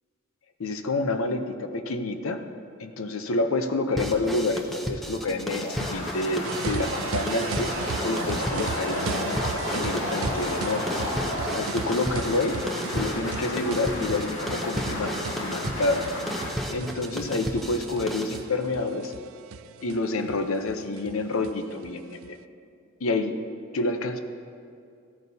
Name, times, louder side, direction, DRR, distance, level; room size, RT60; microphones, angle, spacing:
voice 1, 0.6-2.4 2.8-7.7 8.0-9.4 9.7-11.0 11.5-12.6 12.9-16.1 16.7-19.1 19.8-22.4 23.0-23.4 23.7-24.2, left 2 dB, 85° left, 7 dB, 0.7 m, -28 dB
sound 1, 4.0-18.4, equal, ahead, 0.7 m, -34 dB
sound 2, 5.5-16.6, left 1 dB, 60° left, 1.9 m, -32 dB
sound 3, 6.4-22.3, right 7 dB, 75° right, 0.3 m, -37 dB
15.0 x 13.5 x 2.7 m, 2.4 s
head